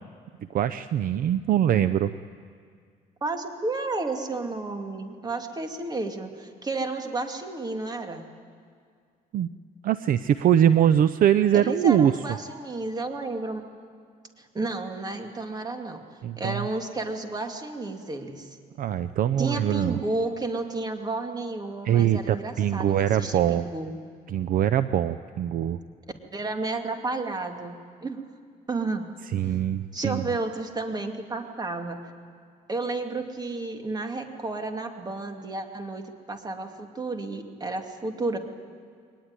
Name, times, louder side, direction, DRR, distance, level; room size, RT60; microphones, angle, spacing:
voice 1, 0.4-2.1 9.3-9.5 9.8-12.1 16.2-16.7 18.8-20.0 21.8-23.7 24.3-25.8 29.3-30.2, right 10 dB, 55° right, 13 dB, 0.6 m, -22 dB
voice 2, 3.2-8.3 11.5-13.6 14.4-16.0 16.4-18.5 19.4-24.0 26.3-28.3 28.7-29.1 29.9-32.0 32.7-38.4, right 3 dB, 25° right, 5 dB, 2.4 m, -32 dB
22.5 x 19.5 x 9.8 m, 2.1 s
cardioid pair, 110°, 17 cm